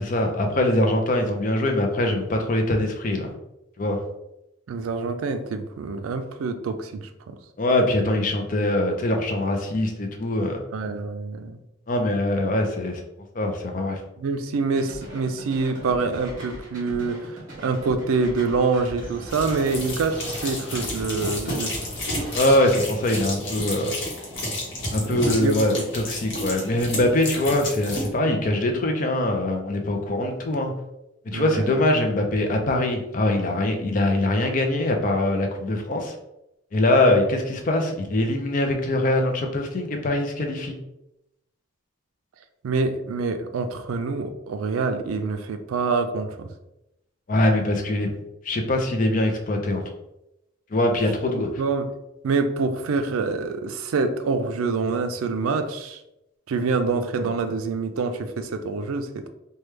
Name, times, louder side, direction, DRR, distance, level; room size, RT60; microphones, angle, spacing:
voice 1, 0.0-3.3 3.8-4.0 7.6-10.6 11.9-13.0 13.3-14.0 22.3-24.0 24.9-30.7 31.3-36.1 36.7-40.7 47.3-48.1 48.4-49.8 50.7-51.5, left 1 dB, 40° left, 3 dB, 0.4 m, -23 dB
voice 2, 4.7-7.4 10.7-11.6 14.2-21.9 25.0-25.8 31.3-31.8 42.6-46.5 51.6-51.9 52.2-56.0 56.5-59.3, right 4 dB, 85° right, 8 dB, 0.4 m, -26 dB
sound 1, 14.8-22.7, equal, 40° right, 1.0 m, -39 dB
sound 2, 19.3-28.1, left 1 dB, 60° left, 0.9 m, -31 dB
3.1 x 2.2 x 3.2 m, 0.88 s
head